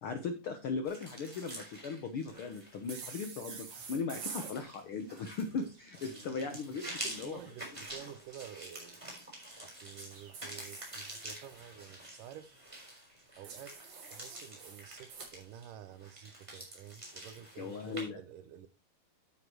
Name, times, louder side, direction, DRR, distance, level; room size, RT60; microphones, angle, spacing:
voice 1, 0.0-7.4 7.7-7.8 17.6-18.2, left 4 dB, 80° left, 1.2 m, -38 dB
sound 1, 0.9-18.1, right 1 dB, 10° right, 3.9 m, -47 dB
sound 2, 2.9-4.6 6.6-8.0 10.1-11.6 13.4-15.3, right 5 dB, 60° right, 3.8 m, -48 dB
voice 2, 6.3-9.1 9.6-12.5 13.3-13.8 14.1-18.7, right 10 dB, 80° right, 2.3 m, -50 dB
9.6 x 9.0 x 3.1 m
omnidirectional pair, 3.9 m